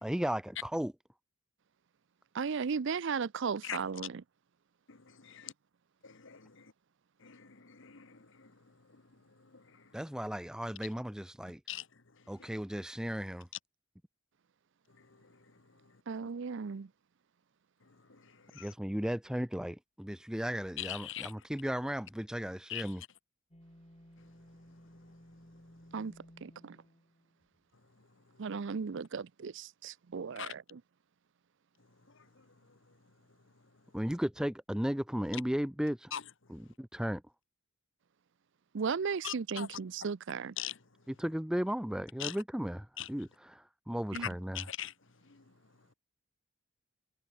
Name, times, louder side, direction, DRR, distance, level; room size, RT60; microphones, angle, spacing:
voice 1, 0.0-0.9 9.9-11.6 12.3-13.5 18.6-23.0 33.9-36.1 36.5-37.2 41.2-44.6, equal, 5° right, 0.5 m, -35 dB
voice 2, 2.3-4.2 16.1-16.9 25.9-26.1 26.4-26.8 28.4-30.8 38.7-40.5 44.1-44.3, right 5 dB, 60° right, 0.5 m, -36 dB
voice 3, 4.9-5.5 6.0-6.7 7.2-8.5 8.9-9.0 9.4-9.9 11.7-11.9 12.4-12.5 15.0-15.4 18.1-18.7 20.8-21.3 22.7-22.9 30.4-30.5 32.1-32.4 36.1-36.2 39.2-39.7 40.6-40.8 42.2-42.4 43.0-43.1 44.2-44.3 44.5-44.9 45.2-45.4, left 10 dB, 60° left, 1.4 m, -42 dB
sound 1, 23.5-27.7, equal, 30° left, 6.4 m, -57 dB
head